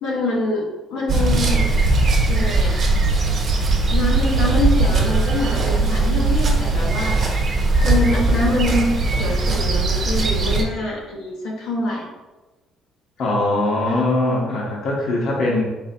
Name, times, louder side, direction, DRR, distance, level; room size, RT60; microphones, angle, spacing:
voice 1, 0.0-1.7 2.3-2.8 3.9-7.2 7.8-12.1 13.8-14.0, left 2 dB, 80° left, -3 dB, 1.1 m, -25 dB
sound 1, 1.1-10.6, right 3 dB, 40° right, 1.0 m, -19 dB
voice 2, 13.2-15.6, left 2 dB, 60° left, -3 dB, 1.0 m, -21 dB
4.9 x 3.9 x 2.7 m, 1.1 s
cardioid pair, 150°, 0 cm